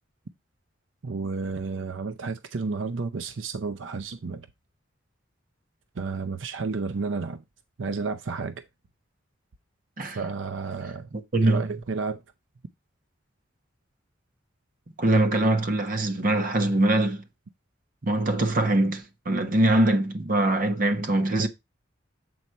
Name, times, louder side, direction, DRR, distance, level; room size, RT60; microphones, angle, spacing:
voice 1, 1.0-4.5 5.9-7.4 7.8-8.7 10.1-11.1 11.4-12.2, right 4 dB, 80° right, 0.6 m, -31 dB
voice 2, 11.3-11.6 15.0-17.2 18.0-21.5, right 1 dB, 45° right, 1.1 m, -23 dB
7.9 x 4.2 x 4.4 m
head